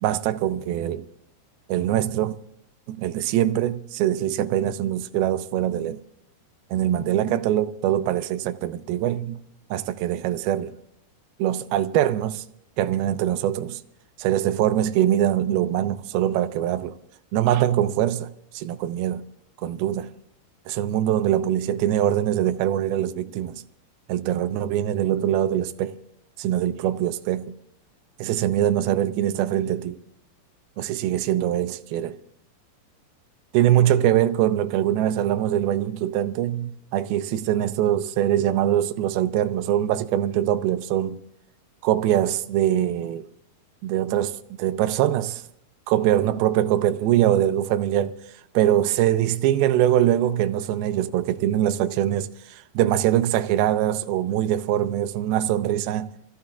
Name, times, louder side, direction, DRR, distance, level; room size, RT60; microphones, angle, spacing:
voice 1, 0.0-1.1 1.7-2.4 2.9-6.0 6.7-9.4 9.7-10.8 11.4-12.4 12.8-13.8 14.2-17.0 17.3-19.2 19.6-20.1 20.7-23.6 24.1-26.0 26.4-27.5 28.2-30.0 30.8-32.2 33.5-41.2 41.8-43.3 43.8-45.4 45.9-48.2 48.5-56.1, right 12 dB, 80° right, 2.4 m, -23 dB
26.5 x 15.5 x 2.4 m
omnidirectional pair, 4.7 m